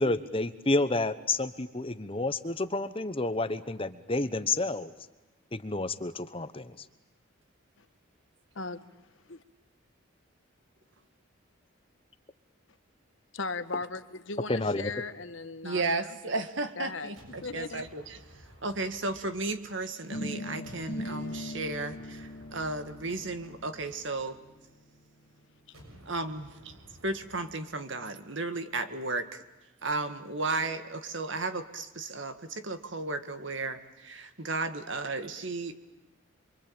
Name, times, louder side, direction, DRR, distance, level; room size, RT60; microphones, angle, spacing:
voice 1, 0.0-4.9 5.5-6.7 14.5-14.9, left 2 dB, 25° left, 12 dB, 1.0 m, -30 dB
voice 2, 8.5-8.8 9.3-9.4 13.3-16.1 16.8-17.1 17.4-17.9, left 3 dB, 65° left, 11 dB, 1.3 m, -37 dB
voice 3, 15.6-24.4 26.0-26.7 27.0-29.4 29.8-35.7, right 3 dB, 60° right, 9 dB, 1.9 m, -34 dB
sound 1, 17.2-20.2 20.6-24.9 25.7-27.8, equal, 90° right, 6.8 m, -55 dB
sound 2, 20.1-26.0, left 1 dB, 50° left, 2.1 m, -41 dB
27.5 x 24.0 x 8.9 m, 1.1 s
head